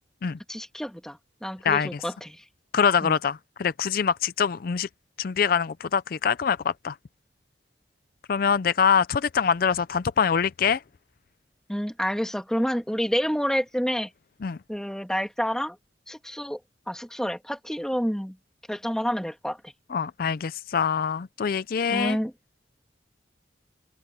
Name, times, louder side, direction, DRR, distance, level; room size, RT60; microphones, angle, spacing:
voice 1, 0.5-2.4 3.0-3.2 11.7-14.1 14.7-15.8 16.1-16.6 16.9-18.4 18.7-19.6 21.9-22.3, equal, 5° left, 2.1 m, -29 dB
voice 2, 2.7-4.9 5.2-7.0 8.3-10.8 14.4-14.6 19.9-22.2, left 6 dB, 50° left, 0.4 m, -24 dB
open air
head